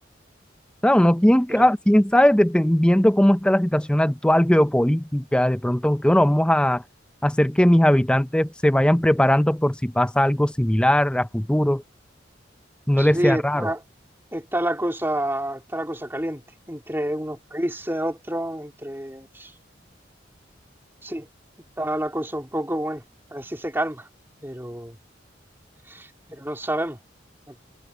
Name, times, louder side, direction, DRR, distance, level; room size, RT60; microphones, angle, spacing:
voice 1, 0.8-6.8 7.2-11.8 12.9-13.7, equal, 5° left, 0.5 m, -19 dB
voice 2, 13.0-13.8 14.3-16.4 16.7-19.5 21.0-21.3 21.8-23.0 23.3-24.1 24.4-25.0 25.9-27.0 27.5-27.6, right 1 dB, 10° right, 3.5 m, -28 dB
head